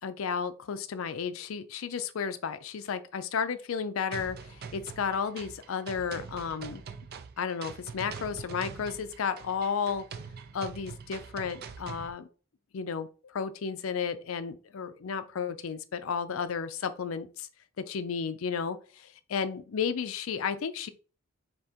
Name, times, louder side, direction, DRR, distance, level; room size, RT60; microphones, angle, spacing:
voice 1, 0.0-6.8 7.4-10.0 10.5-12.3 12.7-13.1 13.3-17.5 17.8-20.9, left 6 dB, 75° left, 0.4 m, -33 dB
sound 1, 4.1-12.1, right 5 dB, 50° right, 0.4 m, -44 dB
3.6 x 2.8 x 4.3 m
head